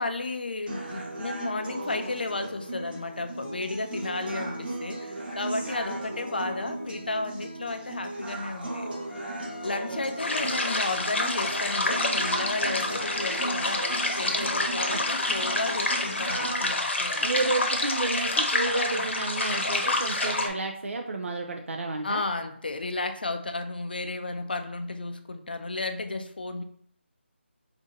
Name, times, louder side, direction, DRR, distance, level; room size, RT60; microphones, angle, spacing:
voice 1, 0.0-8.9 9.6-13.9 14.2-17.3 22.0-26.6, left 3 dB, 50° left, 7 dB, 0.4 m, -33 dB
sound 1, 0.7-16.7, right 1 dB, 45° right, 1.1 m, -37 dB
Wind instrument woodwind instrument, 9.1-14.3, left 1 dB, 5° left, 0.9 m, -45 dB
sound 2, 10.2-20.5, left 2 dB, 70° left, 0.8 m, -28 dB
voice 2, 17.2-22.2, right 2 dB, 80° right, 2 dB, 0.5 m, -31 dB
4.9 x 2.6 x 2.6 m, 0.63 s
figure-of-eight pair, 175°, 7 cm